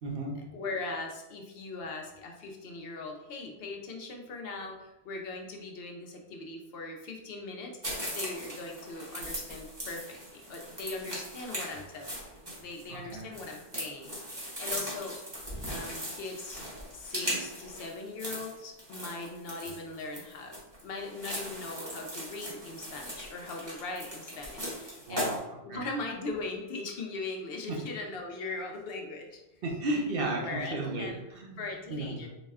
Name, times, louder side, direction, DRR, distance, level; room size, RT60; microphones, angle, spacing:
voice 1, 0.0-0.4 12.9-13.3 25.1-25.4 25.7-25.8 27.7-27.8 29.6-31.6 31.9-32.2, right 2 dB, 65° right, 0 dB, 0.8 m, -34 dB
voice 2, 0.5-12.2 12.6-15.2 15.6-16.7 16.9-20.5 20.8-25.3 25.6-29.3 30.3-31.2 31.6-32.3, left 3 dB, 65° left, 2 dB, 0.8 m, -40 dB
sound 1, 7.8-25.4, equal, 25° right, 1.1 m, -39 dB
4.1 x 2.1 x 3.4 m, 0.97 s
omnidirectional pair, 1.1 m